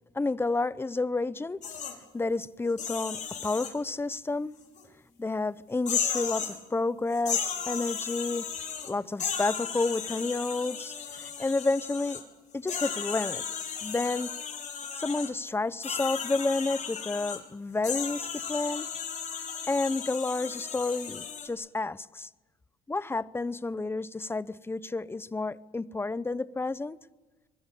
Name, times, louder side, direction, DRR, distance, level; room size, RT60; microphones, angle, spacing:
voice 1, 0.1-1.6 2.1-4.5 5.2-8.5 8.8-12.2 12.5-13.4 13.8-14.3 14.9-18.9 19.7-22.3 22.9-27.0, left 3 dB, 15° left, 0.8 m, -30 dB
sound 1, 1.6-1.9 2.7-3.7 4.8-4.9 5.8-6.6 7.1-8.9 9.2-12.2 12.7-15.3 15.8-17.4 17.8-21.5, left 7 dB, 45° left, 5.7 m, -35 dB
24.0 x 21.5 x 8.4 m
cardioid pair, 110°, 17 cm